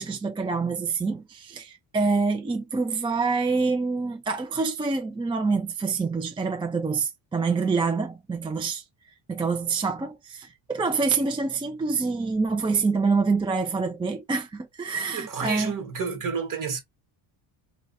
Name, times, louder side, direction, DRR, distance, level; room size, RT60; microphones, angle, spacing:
voice 1, 0.0-8.8 9.3-15.7, right 4 dB, 10° right, 0.4 m, -26 dB
voice 2, 14.9-16.8, right 5 dB, 45° right, 1.3 m, -31 dB
2.4 x 2.3 x 4.0 m
cardioid pair, 95°, 45 cm